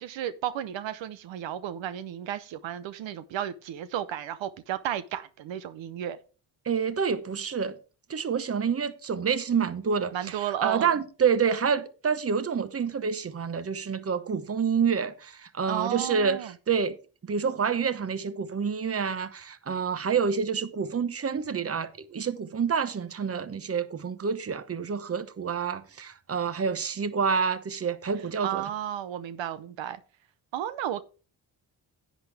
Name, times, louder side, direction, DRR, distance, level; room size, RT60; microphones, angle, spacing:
voice 1, 0.0-6.2 10.1-10.9 15.7-16.5 28.4-30.0 30.5-31.0, right 11 dB, 85° right, 0.7 m, -33 dB
voice 2, 6.7-7.8 8.1-17.0 17.3-28.6, right 6 dB, 30° right, 0.9 m, -28 dB
10.5 x 8.3 x 3.3 m
cardioid pair, 85°, 44 cm